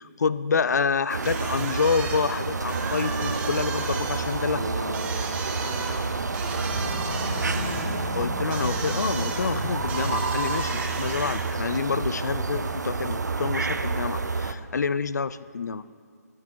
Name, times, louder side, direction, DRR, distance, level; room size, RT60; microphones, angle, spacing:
voice 1, 0.0-4.6 8.1-16.0, left 5 dB, 75° left, 16 dB, 0.4 m, -28 dB
sound 1, 1.1-14.5, right 4 dB, 85° right, 0.6 m, -29 dB
sound 2, 1.2-11.7, right 4 dB, 15° right, 0.7 m, -36 dB
voice 2, 4.5-7.9, right 1 dB, 35° right, -5 dB, 2.0 m, -39 dB
sound 3, 6.5-12.5, left 3 dB, 60° left, 1.0 m, -37 dB
9.5 x 7.6 x 4.9 m, 2.2 s
figure-of-eight pair, 145°, 9 cm